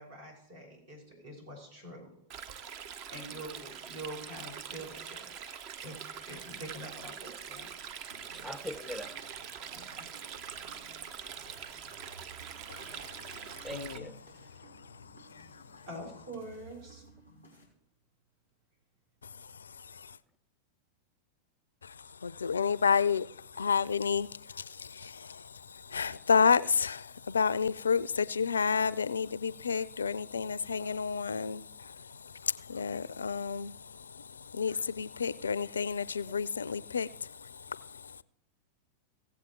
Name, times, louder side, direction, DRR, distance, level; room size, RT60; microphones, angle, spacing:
voice 1, 0.0-2.1 3.1-5.6 5.8-7.7 9.7-10.1 15.9-17.0, right 1 dB, 60° right, 5.4 m, -45 dB
Stream, 2.3-14.0, right 7 dB, 40° right, 0.7 m, -44 dB
sound 1, 8.1-17.6, right 1 dB, 85° right, 3.4 m, -56 dB
voice 2, 8.3-9.2 13.6-14.2 36.3-36.4, left 1 dB, 5° right, 0.6 m, -42 dB
voice 3, 13.3-14.0 15.3-15.6 20.0-20.1 21.8-21.9 22.2-38.1, left 6 dB, 70° left, 0.4 m, -31 dB
16.5 x 7.7 x 4.5 m
figure-of-eight pair, 90°, 0 cm